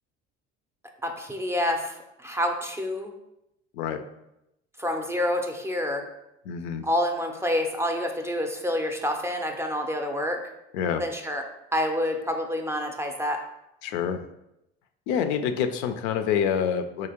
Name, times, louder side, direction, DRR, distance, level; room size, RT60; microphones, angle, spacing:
voice 1, 1.0-3.1 4.8-6.0 6.8-10.4 11.0-11.4 11.7-13.4, left 1 dB, 10° right, 3 dB, 0.4 m, -28 dB
voice 2, 6.5-6.8 10.7-11.0 13.8-14.2 15.1-17.1, left 7 dB, 75° left, 8 dB, 0.5 m, -27 dB
3.6 x 2.9 x 2.9 m, 0.85 s
hypercardioid pair, 70°, 32 cm